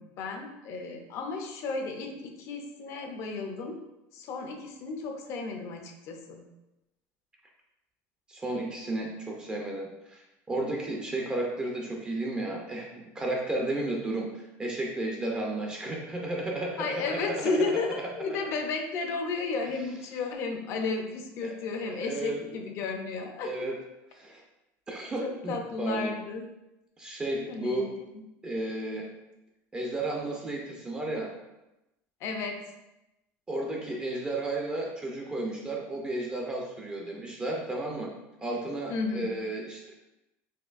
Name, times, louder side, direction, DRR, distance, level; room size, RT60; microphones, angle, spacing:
voice 1, 0.0-3.8 4.1-6.4 16.8-23.7 25.2-26.5 27.5-28.2 32.2-32.6 38.9-39.3, left 4 dB, 50° left, 4 dB, 0.5 m, -33 dB
voice 2, 8.3-10.2 10.5-17.6 18.3-18.4 21.4-21.5 21.9-22.4 23.4-23.8 24.1-24.4 24.9-26.1 27.0-27.9 28.4-29.1 29.7-31.3 33.5-38.1 38.4-39.9, right 2 dB, 15° right, -1 dB, 0.4 m, -33 dB
4.2 x 2.6 x 2.4 m, 0.94 s
cardioid pair, 145°, 6 cm